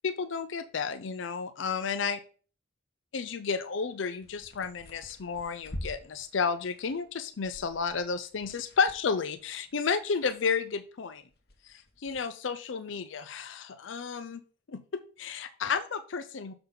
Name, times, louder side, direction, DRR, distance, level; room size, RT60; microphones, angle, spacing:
voice 1, 0.0-2.2 3.1-11.2 11.6-14.4 14.7-16.5, left 5 dB, 80° left, 10 dB, 0.5 m, -32 dB
sound 1, 3.9-10.9 11.2-12.2, left 1 dB, 50° left, 1.2 m, -47 dB
6.8 x 5.7 x 3.9 m, 0.39 s
head